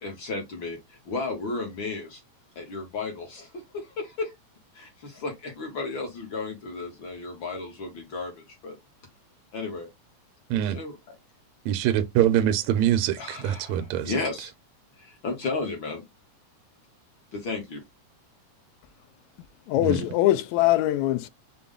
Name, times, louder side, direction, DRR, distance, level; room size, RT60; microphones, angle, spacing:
voice 1, 0.0-2.2 2.5-4.3 4.7-8.8 9.5-9.9 10.7-11.1 13.2-14.5 15.0-16.0 17.3-17.8, left 3 dB, 55° left, 1.5 m, -34 dB
voice 2, 11.6-14.1 19.8-20.0, right 11 dB, 80° right, 1.8 m, -24 dB
voice 3, 19.7-21.3, left 14 dB, 80° left, 1.8 m, -22 dB
5.4 x 2.2 x 3.6 m
omnidirectional pair, 3.3 m